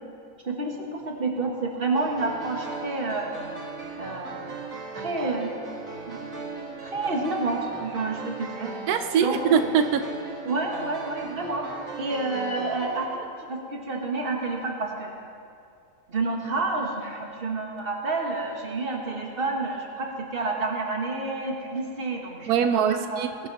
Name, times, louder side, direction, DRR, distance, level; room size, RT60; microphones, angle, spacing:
voice 1, 0.4-3.3 4.0-4.6 4.9-5.5 6.1-6.5 6.8-8.7 9.2-9.6 10.5-11.7 12.0-15.1 16.1-23.4, right 3 dB, 40° right, 0 dB, 1.9 m, -29 dB
sound 1, 2.0-13.0, right 3 dB, 65° right, 1.9 m, -38 dB
voice 2, 8.9-10.0 22.5-23.5, right 7 dB, 90° right, 9 dB, 1.1 m, -23 dB
18.5 x 11.5 x 4.1 m, 2.5 s
omnidirectional pair, 1.6 m